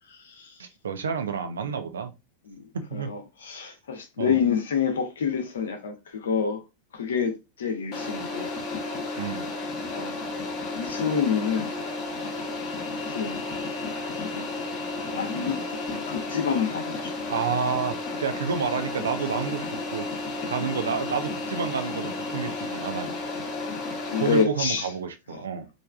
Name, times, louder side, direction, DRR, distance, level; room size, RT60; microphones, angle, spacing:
voice 1, 0.6-2.1 2.7-3.1 4.2-4.4 9.2-9.5 17.3-20.1 20.5-23.2 24.2-25.7, right 6 dB, 65° right, 0.5 m, -30 dB
voice 2, 2.9-6.6 6.9-8.5 9.9-10.2 10.7-11.7 13.0-13.4 14.2-14.4 15.1-17.1 23.6-23.7 24.1-24.9, left 6 dB, 65° left, 0.7 m, -28 dB
sound 1, 7.9-24.4, left 3 dB, 35° left, 0.9 m, -32 dB
3.3 x 2.5 x 2.3 m
figure-of-eight pair, 90°, 0 cm